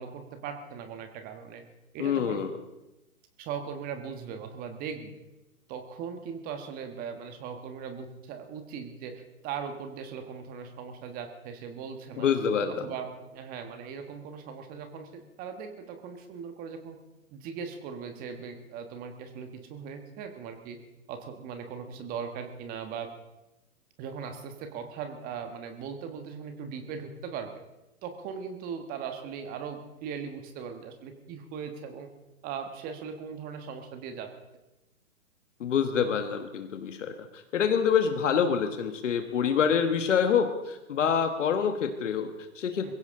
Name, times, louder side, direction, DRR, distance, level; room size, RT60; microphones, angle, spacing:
voice 1, 0.0-1.6 1.9-2.4 3.4-5.1 5.7-12.3 12.7-17.0 17.3-20.8 21.1-23.1 24.0-27.5 28.0-32.1 32.4-34.3 42.8-42.9, right 6 dB, 20° right, 7 dB, 1.4 m, -39 dB
voice 2, 2.0-2.5 12.2-12.9 35.6-37.3 37.5-42.9, left 7 dB, 55° left, 7 dB, 1.5 m, -26 dB
22.0 x 16.0 x 3.7 m, 0.96 s
hypercardioid pair, 140°, 43 cm